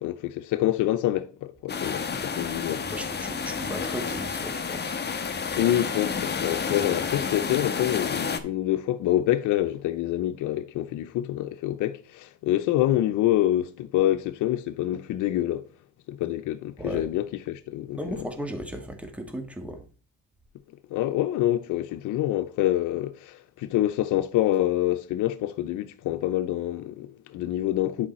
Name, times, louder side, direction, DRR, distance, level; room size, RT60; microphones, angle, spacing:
voice 1, 0.0-2.9 5.6-15.7 16.1-18.2 20.9-28.1, left 13 dB, 90° left, 0.6 m, -26 dB
sound 1, 1.7-8.4, left 5 dB, 35° left, 1.2 m, -30 dB
voice 2, 2.9-5.0 16.8-17.0 18.0-19.8, equal, 5° right, 1.6 m, -36 dB
10.0 x 4.9 x 4.3 m
cardioid pair, 90°, 30 cm